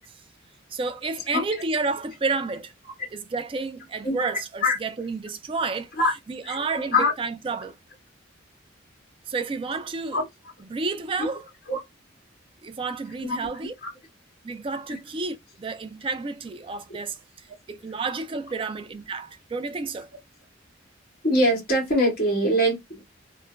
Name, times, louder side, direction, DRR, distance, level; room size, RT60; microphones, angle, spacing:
voice 1, 0.7-2.7 3.1-5.9 6.3-7.8 9.3-10.2 10.6-11.5 12.6-13.7 14.4-20.1, right 4 dB, 25° right, 0.3 m, -30 dB
voice 2, 21.2-23.0, left 1 dB, 50° left, 1.6 m, -22 dB
3.1 x 2.1 x 2.3 m
head